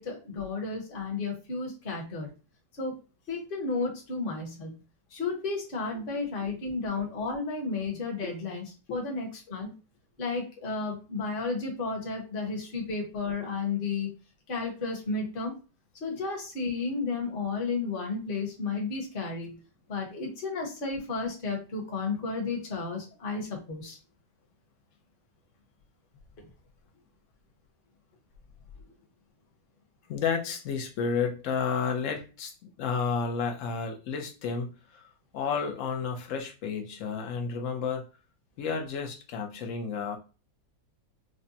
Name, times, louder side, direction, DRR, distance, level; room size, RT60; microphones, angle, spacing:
voice 1, 0.0-2.3 2.8-2.9 3.3-4.8 5.1-9.7 10.2-14.1 14.5-15.5 16.0-19.6 19.9-24.0, left 4 dB, 40° left, 0 dB, 0.9 m, -32 dB
voice 2, 5.9-6.5 8.2-8.3 8.9-9.0 30.1-38.0 38.6-40.2, left 5 dB, 70° left, 4 dB, 0.7 m, -32 dB
4.9 x 2.2 x 2.6 m, 0.33 s
omnidirectional pair, 2.0 m